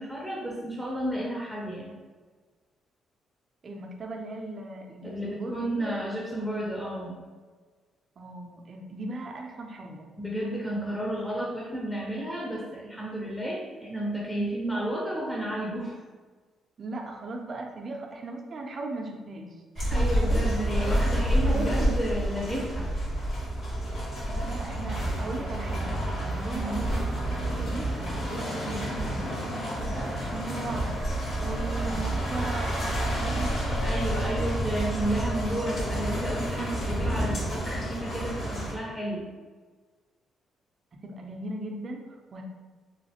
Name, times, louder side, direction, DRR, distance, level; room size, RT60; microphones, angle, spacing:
voice 1, 0.0-2.0 5.0-7.2 10.2-16.0 19.9-22.9 26.5-26.8 33.8-39.3, right 1 dB, 5° left, -3 dB, 0.6 m, -32 dB
voice 2, 3.6-6.6 8.2-10.1 16.8-20.5 21.3-22.0 24.3-26.0 26.3-30.9 31.4-34.4 41.0-42.4, right 2 dB, 45° right, 1 dB, 0.5 m, -38 dB
sound 1, 19.8-38.7, equal, 65° left, 1.5 m, -29 dB
3.1 x 2.4 x 2.8 m, 1.4 s
cardioid pair, 90°, 0 cm